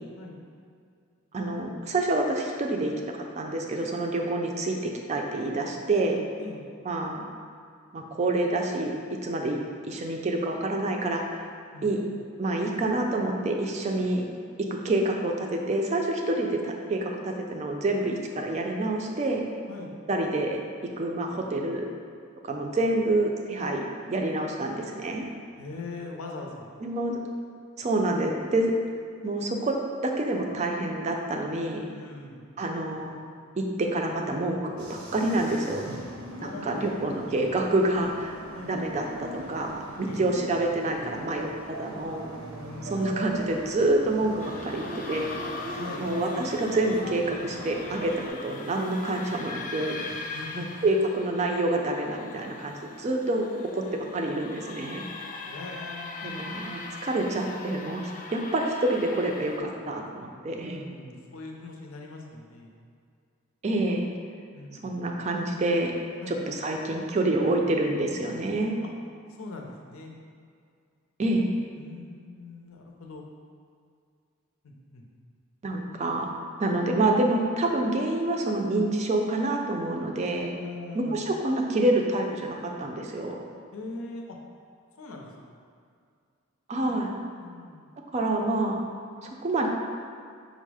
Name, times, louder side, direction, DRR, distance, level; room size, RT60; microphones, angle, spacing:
voice 1, 1.3-6.2 6.8-7.3 7.9-9.0 9.2-11.4 11.8-12.0 12.4-14.3 14.6-19.4 20.1-20.6 21.0-21.9 22.4-25.3 26.8-27.2 27.8-28.7 29.2-31.9 32.6-33.2 33.5-36.0 36.4-38.4 38.7-42.3 42.8-45.4 46.0-50.0 50.6-55.0 56.2-60.8 63.6-64.1 64.8-65.9 66.3-68.8 71.2-71.5 75.6-76.3 76.6-80.5 80.9-83.4 86.7-87.1 88.1-88.8 89.2-89.7, right 2 dB, 30° right, 2 dB, 0.4 m, -27 dB
voice 2, 25.6-26.7 31.9-32.4 36.4-37.0 38.5-38.7 40.1-40.3 42.6-43.3 45.7-46.1 50.1-50.9 55.4-56.5 60.7-62.7 64.5-65.0 66.2-66.4 68.8-68.9 69.4-70.1 71.8-73.2 74.6-75.0 76.6-76.7 80.6-81.2 83.7-84.4 85.0-85.3 87.4-87.9, left 3 dB, 80° left, 0 dB, 0.6 m, -41 dB
sound 1, 34.8-48.3, right 1 dB, 85° right, 0.7 m, -40 dB
sound 2, 44.4-59.6, left 3 dB, 40° left, 0.3 m, -41 dB
5.3 x 2.0 x 4.7 m, 2.2 s
head